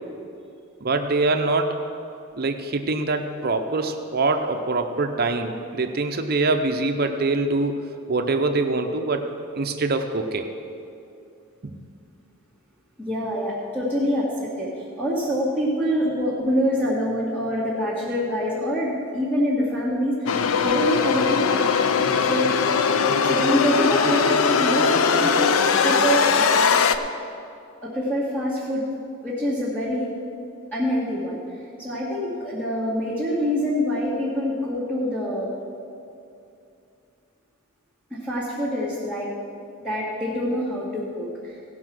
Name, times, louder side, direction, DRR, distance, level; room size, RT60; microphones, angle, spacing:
voice 1, 0.8-1.8 2.3-9.3 9.6-10.5 11.6-11.7, right 3 dB, 45° right, 5 dB, 0.6 m, -24 dB
voice 2, 13.0-20.3 20.6-21.6 22.2-22.5 23.2-26.3 27.8-28.8 29.2-30.1 30.7-31.4 31.8-35.5 38.1-39.3 39.8-41.6, equal, 10° left, -11 dB, 2.0 m, -25 dB
sound 1, 20.3-27.0, left 5 dB, 75° left, 0.5 m, -20 dB
17.0 x 5.7 x 6.2 m, 2.6 s
head